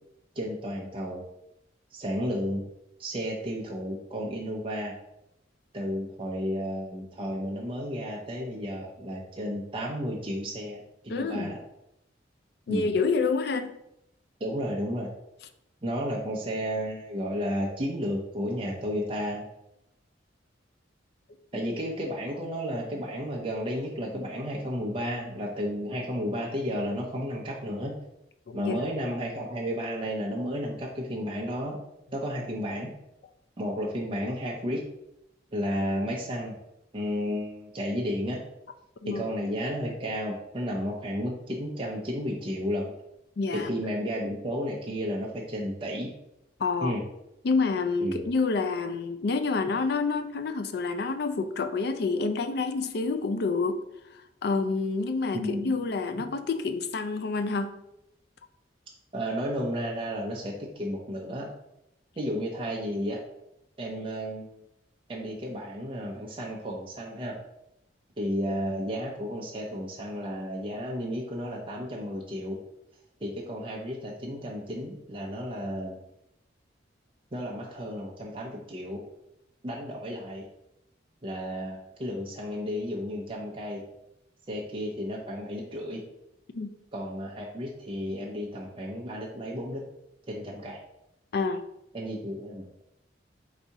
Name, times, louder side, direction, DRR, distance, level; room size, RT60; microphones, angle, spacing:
voice 1, 0.4-1.2 1.9-2.6 3.0-4.9 5.7-11.6 12.7-12.9 14.4-15.1 15.8-19.5 21.5-27.9 28.5-31.8 32.1-32.9 33.6-34.8 35.5-36.5 36.9-38.4 39.1-42.9 43.5-46.1 46.8-47.0 48.0-48.3 55.3-55.7 59.1-61.5 62.2-63.2 63.8-64.6 65.1-67.4 68.2-72.6 73.2-76.0 77.3-79.0 79.6-80.5 81.2-83.8 84.5-86.0 86.9-89.8 90.3-90.8 91.9-92.6, equal, 30° right, -2 dB, 0.6 m, -32 dB
voice 2, 11.1-11.5 12.7-13.7 28.5-28.8 39.0-39.2 43.4-43.7 46.6-46.9 47.4-53.8 54.1-57.7 86.5-86.7 91.3-91.6, left 4 dB, 60° left, 8 dB, 0.4 m, -28 dB
4.0 x 2.7 x 4.6 m, 0.83 s
head